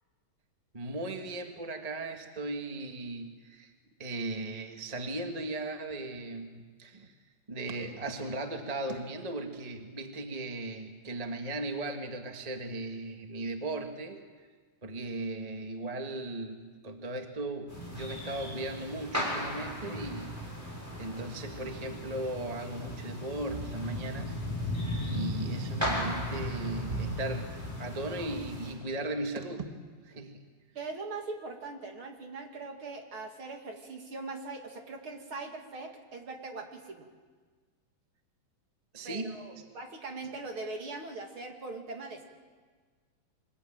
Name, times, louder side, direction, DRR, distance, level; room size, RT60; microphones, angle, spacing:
voice 1, 0.7-3.7 4.0-7.1 7.5-14.2 14.8-20.3 20.9-24.4 25.0-29.8 30.0-30.4 38.9-39.6, right 2 dB, 20° right, 4 dB, 0.9 m, -37 dB
sound 1, 17.7-28.7, equal, 5° right, 6.6 m, -36 dB
voice 2, 30.7-37.1 39.0-42.2, right 3 dB, 45° right, 3 dB, 2.9 m, -41 dB
25.0 x 20.5 x 9.0 m, 1.5 s
omnidirectional pair, 3.6 m